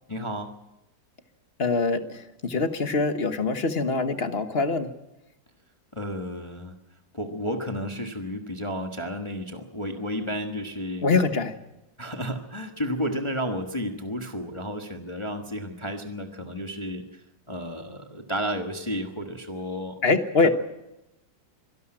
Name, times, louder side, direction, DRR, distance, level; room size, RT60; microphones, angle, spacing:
voice 1, 0.1-0.6 5.9-6.7 7.1-11.1 12.0-20.0 20.4-20.5, equal, 15° left, 5 dB, 1.2 m, -32 dB
voice 2, 1.6-4.9 11.0-11.5 20.0-20.5, left 3 dB, 35° left, 9 dB, 1.3 m, -24 dB
24.5 x 12.0 x 8.9 m, 0.93 s
omnidirectional pair, 2.1 m